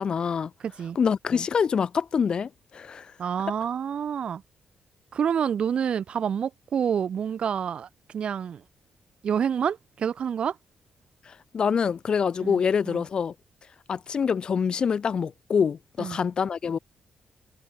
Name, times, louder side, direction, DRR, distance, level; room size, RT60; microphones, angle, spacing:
voice 1, 0.0-0.5 0.9-3.0 11.5-13.3 13.9-16.8, left 6 dB, 40° left, 1.7 m, -25 dB
voice 2, 0.6-1.0 3.2-4.4 5.1-8.6 9.2-10.6 12.4-13.0 16.0-16.2, right 8 dB, 50° right, 4.6 m, -28 dB
wide cardioid pair, 150°, 2 cm